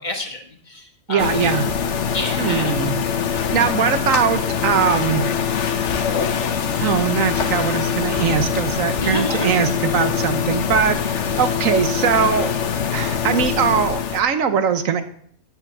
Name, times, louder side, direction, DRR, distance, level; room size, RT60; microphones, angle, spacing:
voice 1, 0.0-1.3 2.1-2.7 9.0-9.5, left 2 dB, 35° left, 3 dB, 1.4 m, -28 dB
voice 2, 1.1-1.7 2.4-3.0 3.5-5.2 6.8-12.5 12.9-15.0, right 7 dB, 70° right, 9 dB, 1.3 m, -21 dB
sound 1, 1.2-14.2, left 7 dB, 55° left, 1.1 m, -23 dB
8.5 x 7.3 x 7.3 m, 0.63 s
omnidirectional pair, 1.5 m